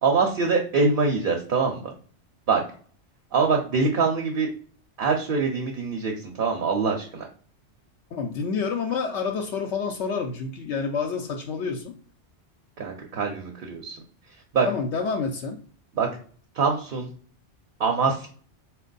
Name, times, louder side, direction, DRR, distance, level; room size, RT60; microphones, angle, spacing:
voice 1, 0.0-1.9 2.5-2.6 3.3-4.5 5.0-7.3 12.8-14.0 14.5-14.7 16.0-16.1 16.5-17.1 17.8-18.3, right 4 dB, 55° right, 1 dB, 0.8 m, -24 dB
voice 2, 8.1-11.9 14.6-15.6, left 5 dB, 75° left, 3 dB, 0.9 m, -28 dB
4.4 x 2.3 x 3.9 m, 0.44 s
omnidirectional pair, 1.2 m